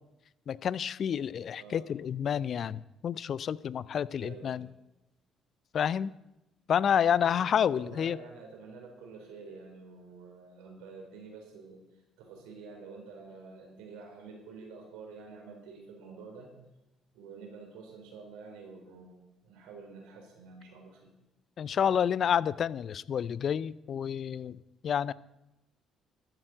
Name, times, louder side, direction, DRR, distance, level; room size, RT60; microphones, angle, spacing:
voice 1, 0.5-4.7 5.7-6.1 6.7-8.2 21.6-24.6 24.8-25.1, left 8 dB, 55° left, 19 dB, 0.5 m, -29 dB
voice 2, 1.6-2.0 4.2-4.7 7.2-7.4 7.7-16.6 17.1-21.1, right 4 dB, 80° right, 2 dB, 4.1 m, -48 dB
13.5 x 7.6 x 7.8 m, 0.94 s
hypercardioid pair, 55°, 0 cm